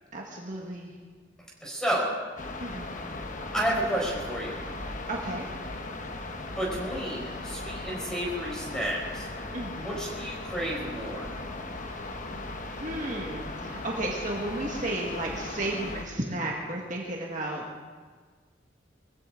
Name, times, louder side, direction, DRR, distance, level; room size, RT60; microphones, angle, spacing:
voice 1, 0.1-0.9 2.6-2.9 5.1-5.5 9.5-10.0 11.9-12.0 12.6-17.6, right 1 dB, 45° right, -2 dB, 1.8 m, -33 dB
voice 2, 1.6-2.0 3.5-4.6 6.6-9.3 9.8-11.3, right 1 dB, 5° left, -3 dB, 4.7 m, -31 dB
sound 1, 2.4-16.0, left 2 dB, 45° left, 1.2 m, -38 dB
22.0 x 15.5 x 3.9 m, 1.5 s
head